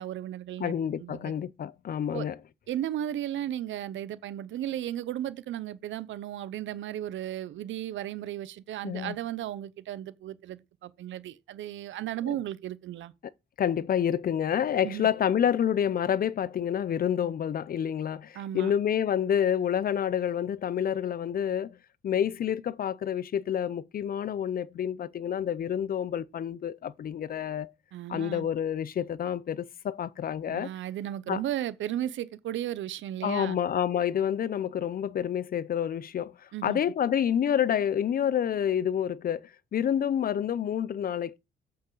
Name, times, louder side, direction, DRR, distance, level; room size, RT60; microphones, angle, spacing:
voice 1, 0.0-1.3 2.1-2.3 2.7-13.1 14.8-15.1 18.3-18.7 27.9-28.5 30.5-33.6 36.5-36.8, right 12 dB, 75° right, 0.8 m, -35 dB
voice 2, 0.6-2.4 8.8-9.2 13.6-21.8 22.0-27.7 28.1-30.7 31.3-31.4 33.2-36.3 36.6-41.4, left 9 dB, 50° left, 0.6 m, -28 dB
8.2 x 6.5 x 3.9 m
cardioid pair, 90°, 20 cm